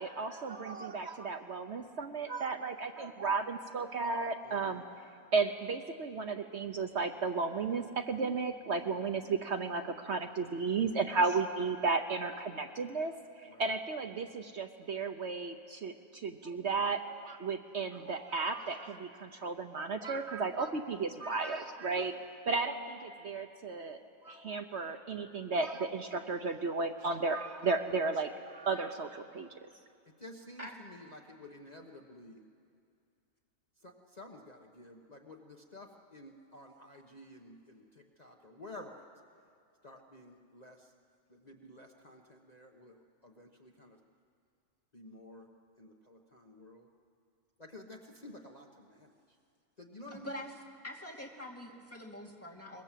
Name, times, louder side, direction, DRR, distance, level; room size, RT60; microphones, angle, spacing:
voice 1, 0.0-4.8 5.3-22.1 22.5-29.5, right 4 dB, 55° right, 7 dB, 1.1 m, -34 dB
voice 2, 4.4-4.8 11.1-11.2 13.5-13.7 21.9-22.2 22.5-22.6 30.2-32.4 33.8-39.1 39.8-40.9 41.3-44.0 44.9-45.5 45.8-46.9 47.6-49.1 49.8-50.5, left 1 dB, 30° left, 1 dB, 1.3 m, -52 dB
voice 3, 50.1-50.5 50.8-52.8, left 1 dB, 10° left, -2 dB, 2.5 m, -44 dB
23.5 x 22.0 x 7.5 m, 2.4 s
omnidirectional pair, 1.4 m